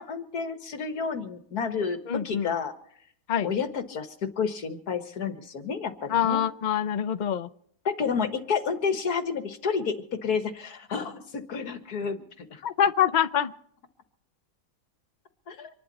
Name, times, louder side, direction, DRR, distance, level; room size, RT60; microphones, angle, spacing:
voice 1, 0.0-2.7 3.4-6.4 7.9-12.6 15.5-15.7, left 6 dB, 75° left, 2.1 m, -30 dB
voice 2, 2.1-2.5 3.3-3.5 6.1-7.5 12.6-13.5, left 9 dB, 50° left, 0.5 m, -25 dB
26.0 x 11.5 x 4.2 m
omnidirectional pair, 1.7 m